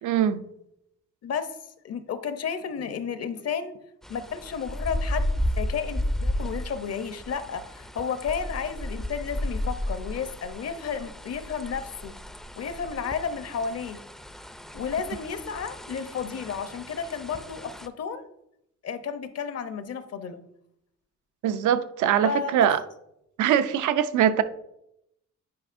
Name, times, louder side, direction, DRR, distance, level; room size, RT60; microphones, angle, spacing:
voice 1, 0.0-0.4 21.4-22.8 23.4-24.4, right 10 dB, 80° right, 0.6 m, -22 dB
voice 2, 1.8-3.7 4.1-12.1 12.6-14.0 14.7-18.3 18.8-20.4 22.2-22.7, left 6 dB, 55° left, 0.8 m, -32 dB
sound 1, 4.0-17.9, left 1 dB, ahead, 0.4 m, -33 dB
9.5 x 4.8 x 2.6 m
cardioid pair, 90°, 30 cm